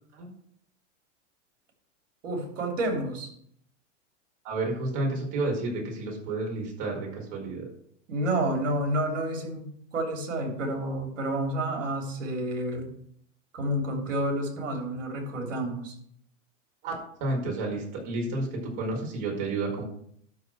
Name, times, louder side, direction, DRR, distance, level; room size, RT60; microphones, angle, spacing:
voice 1, 2.2-3.3 8.1-12.9 13.5-15.9, right 1 dB, 85° right, 3 dB, 3.3 m, -29 dB
voice 2, 4.4-7.7 16.8-16.9 17.2-19.8, right 2 dB, 50° right, -1 dB, 5.0 m, -31 dB
12.0 x 4.2 x 7.6 m, 0.66 s
hypercardioid pair, 125°, 37 cm